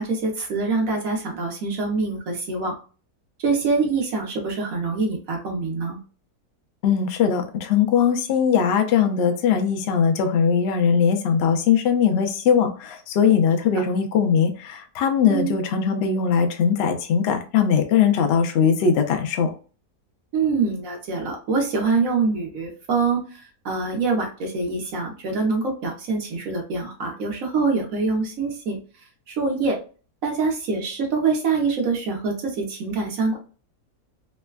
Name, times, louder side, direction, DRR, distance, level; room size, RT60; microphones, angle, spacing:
voice 1, 0.0-2.7 3.4-6.0 13.7-13.8 15.3-15.6 20.3-28.8 29.3-29.8 30.2-33.4, right 4 dB, 65° right, 1 dB, 1.2 m, -25 dB
voice 2, 6.8-19.5, left 7 dB, 85° left, 5 dB, 0.5 m, -20 dB
3.2 x 2.2 x 2.2 m, 0.37 s
omnidirectional pair, 1.7 m